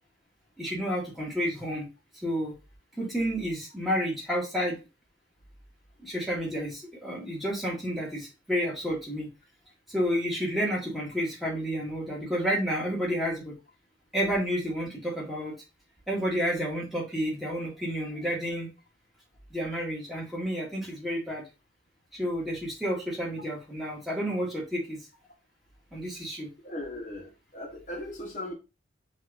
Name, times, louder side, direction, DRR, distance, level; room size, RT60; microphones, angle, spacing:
voice 1, 0.6-1.9 2.2-2.5 3.0-4.8 6.0-9.3 9.9-13.5 14.1-15.5 16.1-18.7 19.5-21.4 22.1-25.0 25.9-26.5, equal, ahead, 1.6 m, -30 dB
voice 2, 26.6-28.5, left 1 dB, 40° left, 1.1 m, -38 dB
6.5 x 2.9 x 2.3 m
head